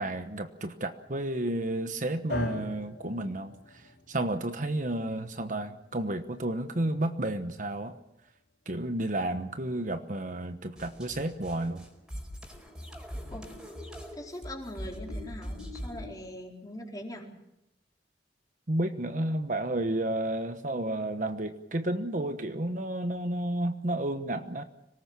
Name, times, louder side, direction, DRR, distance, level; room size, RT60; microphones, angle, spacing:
voice 1, 0.0-8.0 8.7-11.8 18.7-24.6, right 1 dB, 45° right, 8 dB, 1.1 m, -31 dB
sound 1, 2.3-10.5, left 1 dB, 85° left, 3.7 m, -43 dB
sound 2, 10.8-16.1, equal, 5° right, 4.8 m, -41 dB
voice 2, 14.1-17.3, left 1 dB, 20° left, 0 dB, 4.3 m, -41 dB
25.5 x 18.5 x 7.3 m, 0.84 s
head